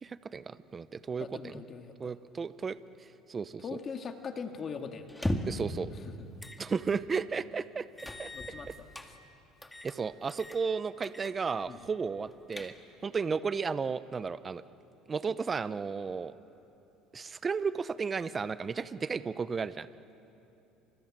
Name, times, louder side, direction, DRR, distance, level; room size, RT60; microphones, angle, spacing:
voice 1, 0.0-1.6 2.0-2.8 3.3-3.6 5.5-5.9 6.6-7.9 8.2-8.3 8.7-8.8 9.8-12.7 13.0-14.6 15.1-16.3 17.1-19.9, right 5 dB, 25° right, 14 dB, 0.8 m, -33 dB
voice 2, 1.2-2.2 3.6-5.1 5.9-6.3 8.3-9.1 11.7-11.8, left 6 dB, 35° left, 5 dB, 2.0 m, -41 dB
sound 1, 5.1-5.7 6.4-6.6 7.0-7.1 8.0-9.1 9.6-10.0 10.3-10.6 11.0-11.4 11.7-11.8 12.3-13.0, left 1 dB, 10° left, 2.0 m, -37 dB
30.0 x 26.0 x 7.6 m, 2.9 s
supercardioid pair, 110°, 0 cm